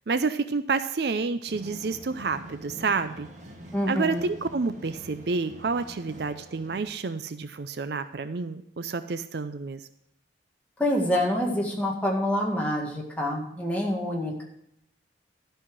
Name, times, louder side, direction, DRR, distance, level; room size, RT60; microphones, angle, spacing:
voice 1, 0.1-3.3 3.9-9.8, right 4 dB, 60° right, 11 dB, 0.5 m, -29 dB
sound 1, 1.5-6.8, equal, 40° right, 1.5 m, -45 dB
voice 2, 3.7-4.3 10.8-14.5, left 1 dB, 10° left, -2 dB, 1.8 m, -26 dB
12.5 x 5.7 x 6.3 m, 0.77 s
head